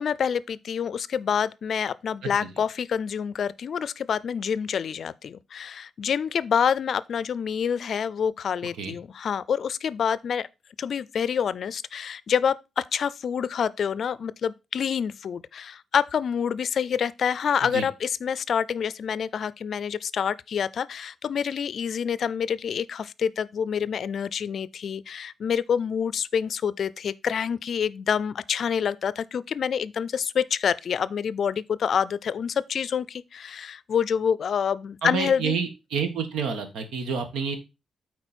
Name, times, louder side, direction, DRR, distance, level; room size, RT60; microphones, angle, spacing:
voice 1, 0.0-10.5 10.8-35.5, left 7 dB, 65° left, 0.4 m, -27 dB
voice 2, 35.0-37.6, right 5 dB, 85° right, 1.4 m, -29 dB
8.9 x 4.3 x 4.2 m
cardioid pair, 70°, 0 cm